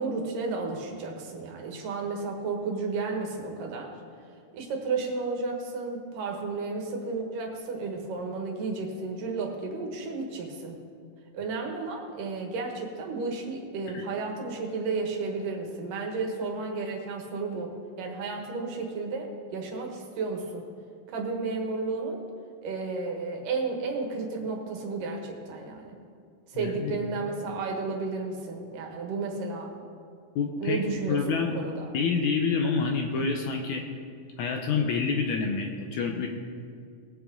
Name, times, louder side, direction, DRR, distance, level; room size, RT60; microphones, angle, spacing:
voice 1, 0.0-3.9 4.5-10.7 11.3-20.7 21.1-22.2 22.6-26.0 26.5-29.9 30.6-31.9, right 4 dB, 70° right, 2 dB, 3.0 m, -32 dB
voice 2, 26.5-27.0 30.4-30.8 31.1-31.6 31.9-33.8 34.4-36.3, left 5 dB, 75° left, 3 dB, 1.9 m, -27 dB
20.5 x 8.0 x 3.8 m, 2.3 s
omnidirectional pair, 4.0 m